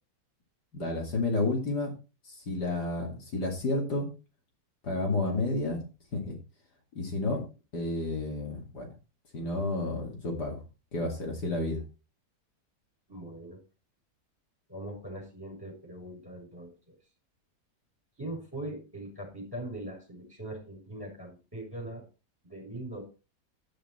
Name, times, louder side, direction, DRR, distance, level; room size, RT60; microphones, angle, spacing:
voice 1, 0.7-1.9 2.3-4.1 4.8-5.8 6.1-6.4 6.9-7.4 7.7-8.9 9.3-10.6 10.9-11.8, left 2 dB, 70° left, 1 dB, 3.2 m, -31 dB
voice 2, 13.1-13.6 14.7-16.9 18.2-22.0 22.4-23.0, right 1 dB, 10° right, 0 dB, 6.2 m, -41 dB
9.9 x 8.8 x 4.4 m, 0.32 s
omnidirectional pair, 1.8 m